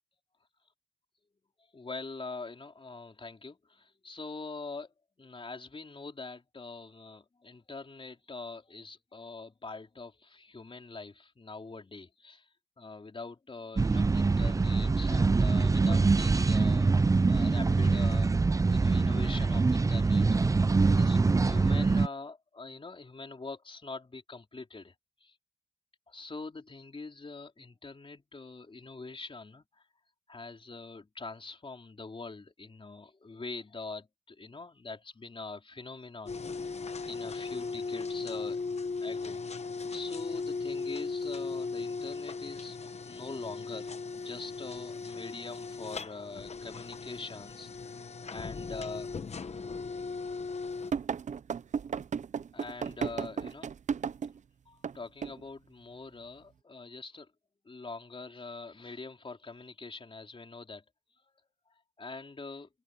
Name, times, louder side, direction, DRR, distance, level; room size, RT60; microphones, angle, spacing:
voice 1, 1.7-4.9 5.2-12.5 12.8-18.4 18.7-20.7 21.0-24.9 25.2-25.3 26.1-29.8 30.3-36.7 37.1-38.6 39.0-39.6 39.9-47.7 48.3-49.1 52.5-53.7 54.7-57.3 57.6-60.8 62.0-62.7, left 3 dB, 45° left, 4.4 m, -44 dB
sound 1, 13.8-22.1, right 3 dB, 25° right, 0.4 m, -24 dB
sound 2, 36.3-50.9, left 4 dB, 65° left, 1.0 m, -37 dB
sound 3, 50.9-54.4 54.8-55.0 55.2-55.4, right 6 dB, 80° right, 0.5 m, -33 dB
wide cardioid pair, 105°, 12 cm